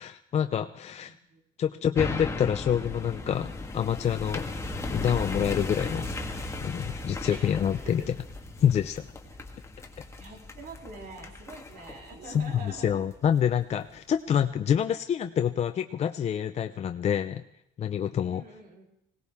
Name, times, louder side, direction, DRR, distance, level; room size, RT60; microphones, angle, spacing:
voice 1, 0.0-1.1 1.6-4.5 4.9-6.1 6.6-8.0 8.6-9.1 12.3-17.4 17.8-18.4, left 9 dB, 40° left, 8 dB, 0.5 m, -27 dB
voice 2, 1.1-1.4 1.7-2.0 7.3-7.5 7.8-8.1 10.2-13.0 18.3-18.8, right 3 dB, 60° right, 1 dB, 3.3 m, -45 dB
sound 1, 2.0-13.4 13.9-14.0, left 2 dB, 15° left, 1.5 m, -36 dB
21.0 x 17.5 x 3.6 m, 0.81 s
cardioid pair, 110°, 17 cm